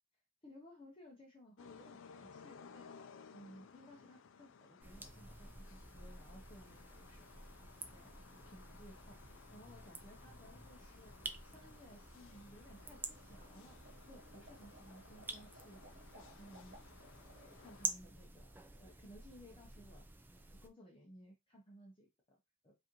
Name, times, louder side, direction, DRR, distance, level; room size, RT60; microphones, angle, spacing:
voice 1, 0.4-3.0 3.3-8.1 8.4-9.2 9.5-11.1 11.4-13.8 14.1-15.8 16.1-20.1 20.3-22.8, equal, 25° left, -1 dB, 0.7 m, -59 dB
sound 1, 1.6-17.9, left 6 dB, 60° left, 0.4 m, -60 dB
sound 2, 4.8-20.7, right 2 dB, 10° right, 0.3 m, -50 dB
sound 3, 12.7-17.7, right 1 dB, 50° right, 1.0 m, -62 dB
4.9 x 2.6 x 3.0 m, 0.24 s
head